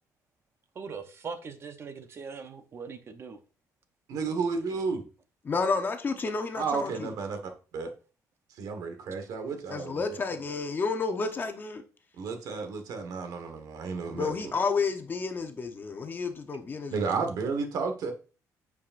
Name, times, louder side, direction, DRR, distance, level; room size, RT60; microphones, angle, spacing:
voice 1, 0.7-3.4, right 5 dB, 40° right, 0.8 m, -41 dB
voice 2, 4.1-5.0 6.6-7.4 7.7-7.9 8.6-10.4 12.2-14.5 16.9-18.1, right 4 dB, 70° right, 1.4 m, -32 dB
voice 3, 5.4-7.1 9.7-11.8 14.1-17.0, left 4 dB, 30° left, 0.9 m, -30 dB
8.4 x 4.8 x 2.6 m
cardioid pair, 120°, 6 cm